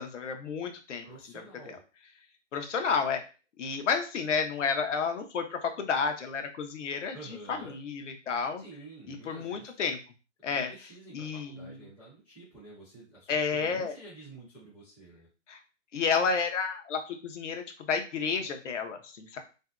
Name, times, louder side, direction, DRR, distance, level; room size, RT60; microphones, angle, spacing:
voice 1, 0.0-1.1 1.7-1.8 2.5-3.2 3.6-8.6 9.1-10.0 10.4-11.8 13.3-14.0 15.5-15.6 15.9-19.4, left 5 dB, 70° left, 5 dB, 0.7 m, -31 dB
voice 2, 1.0-1.8 7.1-7.8 8.6-9.7 10.4-15.3 19.3-19.4, right 2 dB, 5° left, -9 dB, 0.4 m, -49 dB
2.6 x 2.1 x 2.3 m, 0.33 s
hypercardioid pair, 145°, 37 cm